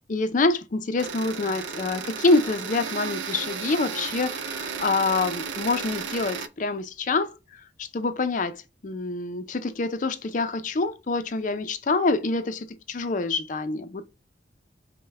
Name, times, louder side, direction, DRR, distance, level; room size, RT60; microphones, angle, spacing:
voice 1, 0.1-8.6 8.8-14.2, left 3 dB, 45° left, 0.5 m, -26 dB
sound 1, 1.0-6.5, right 6 dB, 90° right, 0.4 m, -34 dB
5.4 x 2.1 x 3.3 m
head